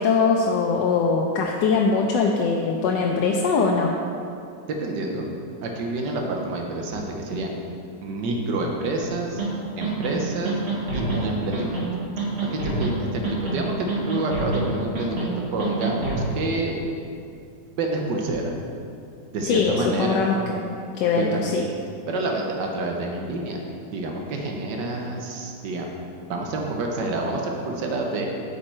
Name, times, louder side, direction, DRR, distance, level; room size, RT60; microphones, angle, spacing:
voice 1, 0.0-3.9 19.5-20.6 21.0-21.6, left 4 dB, 90° left, 0 dB, 1.3 m, -22 dB
voice 2, 4.8-5.3 5.6-7.5 8.0-9.4 9.8-10.6 10.9-11.8 12.5-16.8 17.8-18.5 19.3-20.2 21.2-21.4 22.1-23.6 23.9-25.9 26.3-28.3, right 2 dB, 90° right, 1 dB, 1.5 m, -28 dB
sound 1, 9.4-9.5 9.8-10.1 10.5-11.2 11.5-11.9 12.2-12.9 13.2-13.6 13.9-14.6 15.0-15.3 15.6-16.2, right 2 dB, 40° right, 1.5 m, -27 dB
8.5 x 5.8 x 4.4 m, 2.5 s
omnidirectional pair, 1.8 m